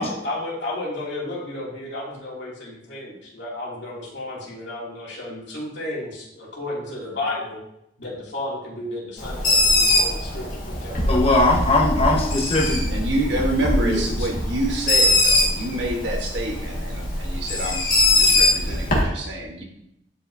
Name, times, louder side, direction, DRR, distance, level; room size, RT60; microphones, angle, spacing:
voice 1, 0.0-7.6 8.0-11.2, left 2 dB, 75° left, -6 dB, 2.9 m, -32 dB
Bird, 9.2-19.0, left 1 dB, 50° left, 2.1 m, -22 dB
voice 2, 11.1-12.9 13.8-14.0, left 2 dB, 35° left, -2 dB, 1.4 m, -20 dB
voice 3, 12.9-19.6, right 1 dB, 70° right, 1 dB, 1.5 m, -27 dB
11.0 x 4.9 x 2.8 m, 0.80 s
head